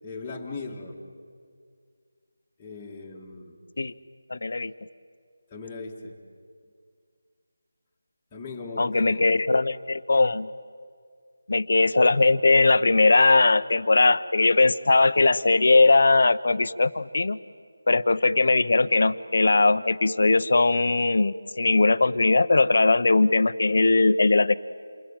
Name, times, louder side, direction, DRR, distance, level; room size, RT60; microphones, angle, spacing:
voice 1, 0.0-1.0 2.6-3.6 5.5-6.2 8.3-9.2, left 3 dB, 10° left, -5 dB, 2.0 m, -38 dB
voice 2, 4.3-4.7 8.8-10.5 11.5-17.4 17.9-24.5, left 3 dB, 55° left, 14 dB, 0.8 m, -20 dB
28.5 x 22.5 x 9.0 m, 2.1 s
figure-of-eight pair, 175°, 0 cm